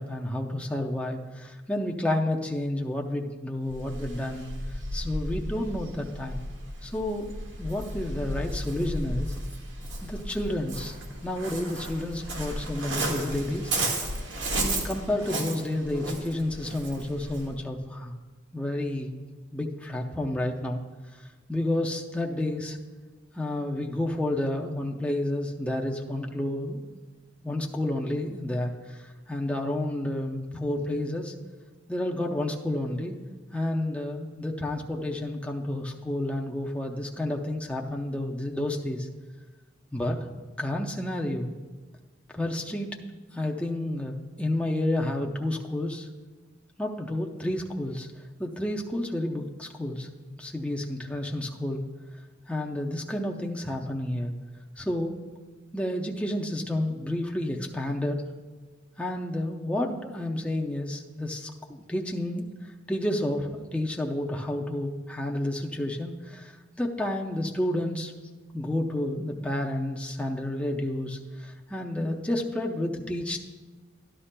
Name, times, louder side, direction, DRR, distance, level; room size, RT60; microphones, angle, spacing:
voice 1, 0.0-4.5 4.9-6.4 6.8-7.3 7.6-9.3 10.0-10.9 11.2-14.1 14.6-18.1 18.5-19.1 19.5-20.8 21.1-21.2 21.5-22.8 23.3-26.8 27.4-29.0 29.3-31.3 31.9-33.2 33.5-39.1 39.9-40.2 40.6-41.5 42.3-43.0 43.3-46.1 46.8-48.1 48.4-51.8 52.5-54.3 54.8-55.2 55.7-58.2 59.0-66.5 66.8-68.1 68.5-73.4, left 1 dB, 5° left, 0 dB, 0.6 m, -30 dB
Waves surf, 3.7-17.6, right 1 dB, 85° right, 1.6 m, -34 dB
13.5 x 11.5 x 2.2 m, 1.3 s
head